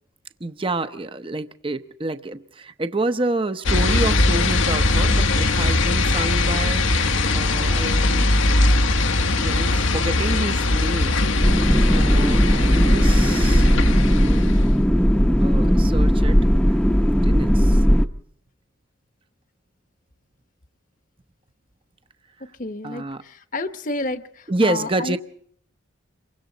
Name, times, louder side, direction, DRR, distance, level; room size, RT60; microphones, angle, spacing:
voice 1, 0.4-8.6 9.4-11.2 11.9-14.5 15.4-16.4 16.7-17.8 22.8-23.2 24.5-25.2, right 2 dB, 25° right, 10 dB, 0.8 m, -28 dB
sound 1, 3.6-14.8, left 2 dB, 75° left, 1.3 m, -20 dB
sound 2, 11.4-18.1, equal, 5° left, 0.9 m, -17 dB
voice 2, 11.9-12.5 22.4-25.2, left 2 dB, 40° left, 10 dB, 1.1 m, -33 dB
28.0 x 23.5 x 4.0 m, 0.64 s
head